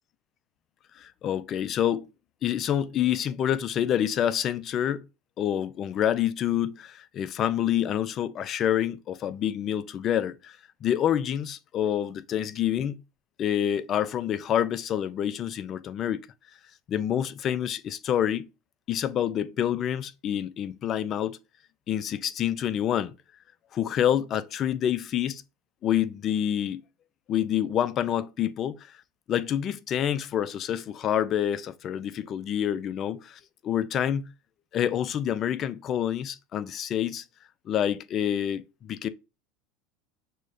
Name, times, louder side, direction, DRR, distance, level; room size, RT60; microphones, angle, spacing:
voice 1, 1.0-2.1 2.4-5.1 5.4-13.0 13.4-16.3 16.9-18.5 18.9-21.4 21.9-23.1 23.7-25.4 25.8-26.8 27.3-28.9 29.3-34.3 34.7-37.2 37.7-39.1, left 10 dB, 45° left, 0.3 m, -27 dB
6.2 x 2.1 x 2.5 m
supercardioid pair, 100°, 0 cm